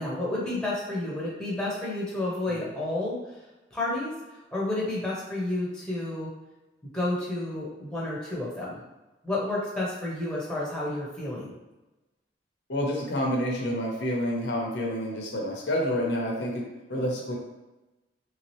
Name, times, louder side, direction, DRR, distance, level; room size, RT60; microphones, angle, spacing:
voice 1, 0.0-3.2 3.7-4.1 4.5-6.3 6.9-8.8 9.2-11.5, left 2 dB, 5° left, -6 dB, 0.8 m, -30 dB
voice 2, 12.7-17.3, equal, 70° left, -1 dB, 0.8 m, -29 dB
3.5 x 2.8 x 3.1 m, 1.1 s
head